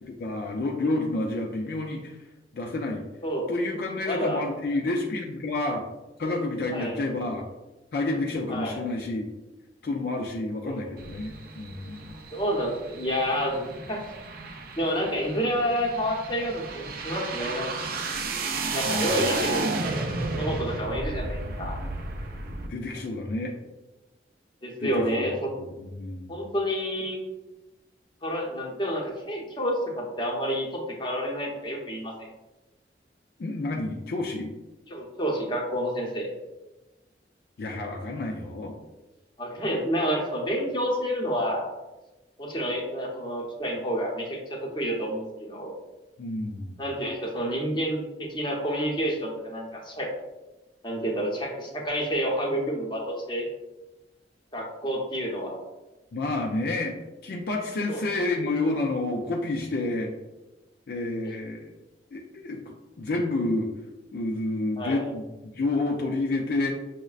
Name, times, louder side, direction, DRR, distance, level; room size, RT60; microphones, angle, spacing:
voice 1, 0.0-2.2 2.5-3.0 3.5-5.8 6.2-7.4 7.9-9.3 9.8-12.1 18.8-19.1 22.7-23.5 24.8-25.3 25.6-26.3 33.4-34.5 37.6-38.7 46.2-46.8 56.1-57.0 57.2-60.1 60.9-61.7 62.1-63.7 64.1-66.7, left 2 dB, 60° left, 0 dB, 0.4 m, -29 dB
voice 2, 4.1-4.4 6.2-6.3 6.7-7.0 8.5-8.8 10.6-10.8 12.3-14.0 14.8-17.7 18.7-19.7 20.4-21.8 24.6-25.3 26.3-27.2 28.2-32.3 34.9-36.3 39.4-41.7 42.4-45.7 46.8-50.1 50.8-53.4 54.5-55.6 57.9-58.0 64.8-65.1, equal, 25° left, -2 dB, 0.8 m, -29 dB
sound 1, 11.0-22.7, right 3 dB, 55° right, 0.4 m, -33 dB
6.1 x 2.1 x 2.4 m, 1.1 s
head